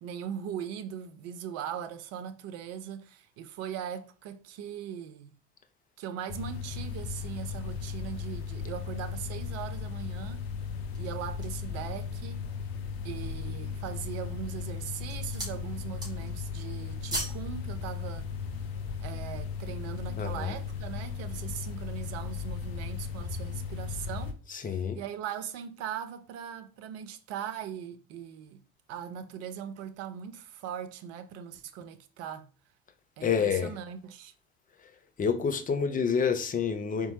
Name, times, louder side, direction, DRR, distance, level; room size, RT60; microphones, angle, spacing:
voice 1, 0.0-5.3 6.0-10.5 11.0-12.5 13.0-18.3 19.0-28.6 28.9-32.5 33.2-34.3, right 9 dB, 50° right, 0.6 m, -40 dB
sound 1, 6.3-24.3, left 6 dB, 65° left, 0.7 m, -36 dB
sound 2, 10.7-11.7 12.3-12.4 12.9-13.4 14.1-14.5 14.8-15.6 15.9-16.4 16.7-17.5 17.8-17.9, right 1 dB, 10° right, 2.1 m, -38 dB
voice 2, 20.2-20.6 24.5-25.0 33.2-33.7 35.2-37.1, left 6 dB, 25° left, 0.6 m, -28 dB
4.1 x 3.5 x 2.8 m
figure-of-eight pair, 65°, 33 cm